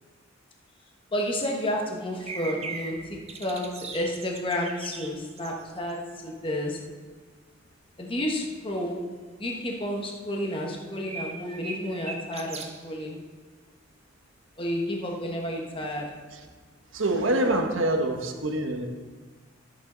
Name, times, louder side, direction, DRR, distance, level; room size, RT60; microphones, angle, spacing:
voice 1, 1.1-6.8 8.0-9.0 9.3-13.2 14.6-16.1, left 1 dB, 25° left, 0 dB, 1.3 m, -31 dB
sound 1, 2.2-6.4 6.8-6.9 7.3-7.7 8.3-8.8 9.2-9.3 9.6-9.7 10.8-12.9 14.8-16.1, right 4 dB, 30° right, 0.9 m, -40 dB
voice 2, 16.9-18.9, right 1 dB, 70° right, 4 dB, 1.2 m, -25 dB
13.0 x 8.6 x 3.9 m, 1.4 s
head